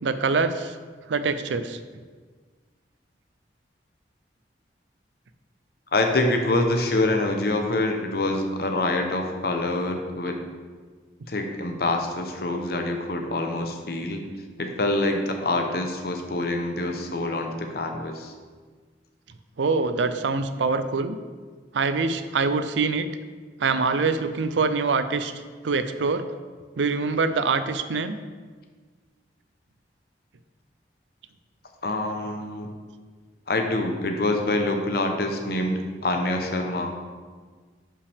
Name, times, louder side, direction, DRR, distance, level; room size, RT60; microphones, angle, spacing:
voice 1, 0.0-0.7 1.1-1.8 19.6-21.2 21.7-23.1 23.6-25.3 25.6-26.2 26.8-28.2, right 4 dB, 80° right, 11 dB, 0.5 m, -24 dB
voice 2, 5.9-10.4 11.3-14.2 14.6-18.3 31.8-32.7 33.5-37.1, left 2 dB, 55° left, 4 dB, 0.9 m, -26 dB
9.7 x 5.5 x 3.5 m, 1.5 s
head